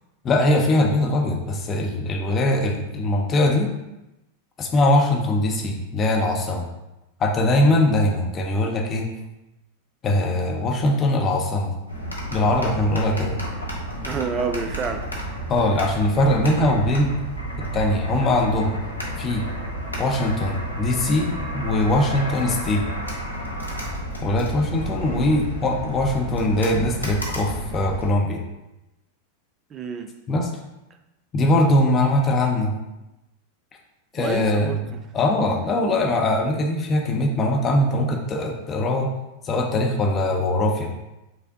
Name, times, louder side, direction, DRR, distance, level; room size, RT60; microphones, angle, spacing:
voice 1, 0.2-3.7 4.6-6.7 7.2-9.1 10.0-11.8 12.3-13.4 15.5-17.1 17.7-18.8 19.2-19.5 20.0-22.8 24.2-28.4 30.3-30.5 31.3-32.7 34.1-39.1 39.4-40.9, left 1 dB, 25° left, 1 dB, 0.6 m, -21 dB
sound 1, 11.9-28.1, right 1 dB, 85° left, 0.7 m, -31 dB
voice 2, 14.1-15.1 29.7-30.1 34.2-34.9, right 5 dB, 25° right, 7 dB, 0.3 m, -28 dB
5.2 x 2.1 x 2.7 m, 0.97 s
figure-of-eight pair, 90°, 0 cm